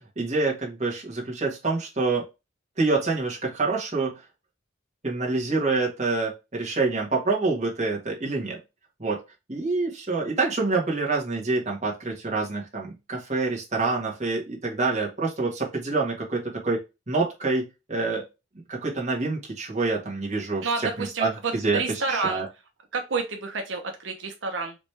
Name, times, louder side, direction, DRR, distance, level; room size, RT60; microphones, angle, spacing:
voice 1, 0.0-2.2 2.8-4.2 5.0-8.6 9.0-9.2 9.5-16.8 17.1-18.2 18.7-22.5, right 3 dB, 35° right, -2 dB, 1.7 m, -27 dB
voice 2, 20.6-22.4 22.9-24.8, right 4 dB, 85° right, 4 dB, 0.9 m, -29 dB
5.0 x 3.1 x 3.3 m, 0.25 s
head